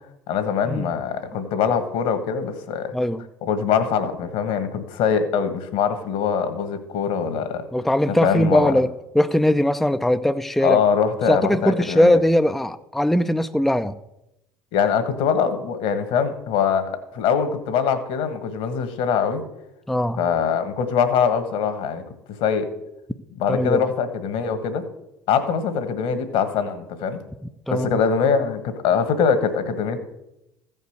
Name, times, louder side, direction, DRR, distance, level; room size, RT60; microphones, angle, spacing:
voice 1, 0.3-2.9 3.4-7.6 8.1-8.7 10.6-12.2 14.7-19.4 20.2-22.0 22.4-22.7 23.4-24.8 25.3-27.2 27.7-30.0, left 6 dB, 65° left, 10 dB, 1.6 m, -23 dB
voice 2, 2.9-3.2 7.7-8.9 9.1-10.8 11.3-13.9 19.9-20.2 23.5-23.8 27.7-27.9, left 1 dB, ahead, 10 dB, 0.5 m, -20 dB
14.5 x 5.4 x 6.5 m, 0.89 s
hypercardioid pair, 65°, 11 cm